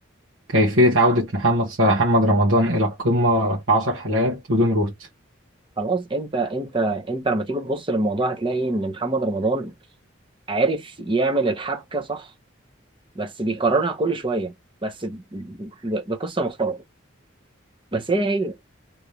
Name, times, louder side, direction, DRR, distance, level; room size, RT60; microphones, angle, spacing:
voice 1, 0.5-4.9, equal, 75° right, 1.3 m, -19 dB
voice 2, 5.8-9.7 10.5-12.3 13.1-14.5 14.8-16.8 17.9-18.6, right 3 dB, 25° right, 0.8 m, -25 dB
3.2 x 3.1 x 2.8 m
head